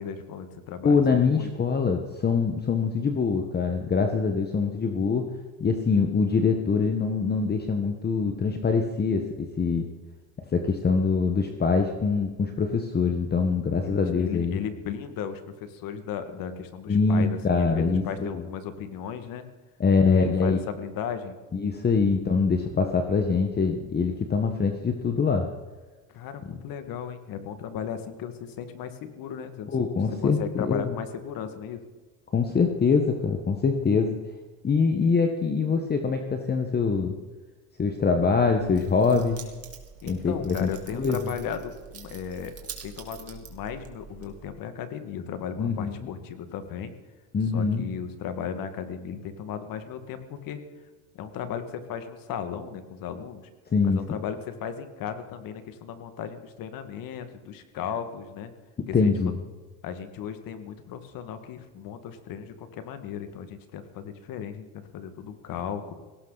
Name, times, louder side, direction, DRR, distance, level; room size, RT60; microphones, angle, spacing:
voice 1, 0.0-1.5 13.8-19.4 20.1-21.4 26.1-29.8 30.2-31.8 40.0-46.9 47.5-50.6 51.1-53.5 53.8-58.5 58.9-59.1 59.8-65.9, left 8 dB, 55° left, 9 dB, 2.1 m, -36 dB
voice 2, 0.8-5.3 5.6-9.8 10.5-14.6 16.9-18.4 19.8-20.6 21.5-25.5 26.5-26.6 29.7-31.0 32.3-34.2 34.6-37.1 37.8-39.4 40.1-41.3 45.6-45.9 47.3-47.8 53.7-54.0 58.8-59.3, left 5 dB, 25° left, 5 dB, 1.4 m, -24 dB
Keys jangling, 38.5-44.5, right 7 dB, 35° right, 2.8 m, -45 dB
18.0 x 17.5 x 4.1 m, 1.3 s
supercardioid pair, 110°, 41 cm